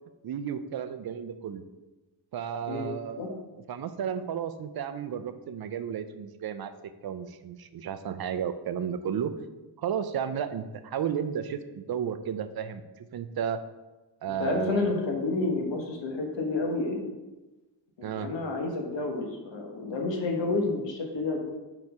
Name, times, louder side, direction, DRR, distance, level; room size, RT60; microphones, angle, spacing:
voice 1, 0.2-1.6 2.3-6.7 7.0-9.3 9.8-13.6 14.2-15.0 18.0-18.4, right 8 dB, 60° right, 11 dB, 0.5 m, -33 dB
voice 2, 14.4-17.0 18.0-21.4, left 3 dB, 85° left, 1 dB, 1.2 m, -29 dB
4.8 x 4.5 x 5.3 m, 1.1 s
wide cardioid pair, 150°, 43 cm